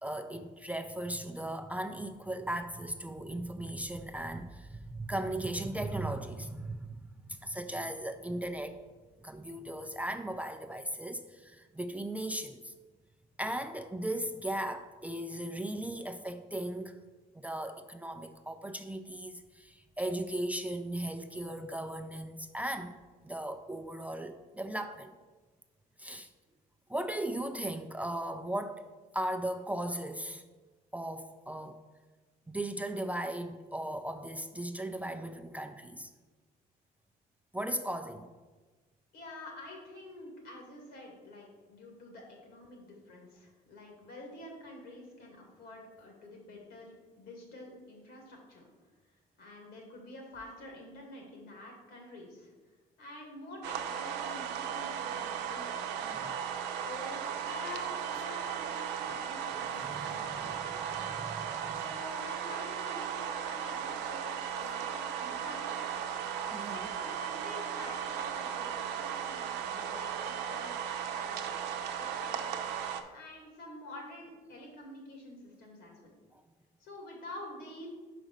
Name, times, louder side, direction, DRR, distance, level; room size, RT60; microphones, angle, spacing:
voice 1, 0.0-7.0 7.3-8.8 9.2-12.7 13.4-17.0 17.4-23.0 23.2-25.1 26.0-26.3 26.9-28.9 29.1-30.4 30.9-31.8 32.5-36.1 37.5-38.3 56.1-56.4 59.8-60.5 60.9-61.8 66.5-66.9, right 1 dB, 10° right, 7 dB, 0.4 m, -37 dB
voice 2, 39.1-48.6 49.4-52.5 53.0-56.0 56.7-60.8 61.7-66.0 66.7-71.6 72.0-72.4 73.1-76.1 76.8-77.9, left 1 dB, 80° left, 0 dB, 2.3 m, -48 dB
sound 1, 53.6-73.0, right 8 dB, 85° right, 0.7 m, -36 dB
5.3 x 5.0 x 6.2 m, 1.3 s
cardioid pair, 110°, 17 cm